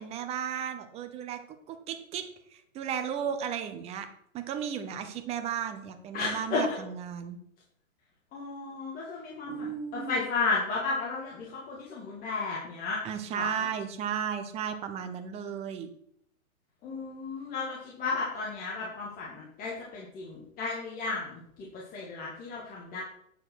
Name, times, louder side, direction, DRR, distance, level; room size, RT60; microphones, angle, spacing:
voice 1, 0.0-4.1 4.3-7.4 9.4-10.2 13.0-15.9, right 8 dB, 15° right, 8 dB, 0.8 m, -35 dB
voice 2, 6.1-6.8 8.3-13.0 13.3-13.5 16.8-23.0, left 4 dB, 20° left, -4 dB, 2.0 m, -33 dB
9.3 x 6.9 x 6.1 m, 0.68 s
hypercardioid pair, 150°, 42 cm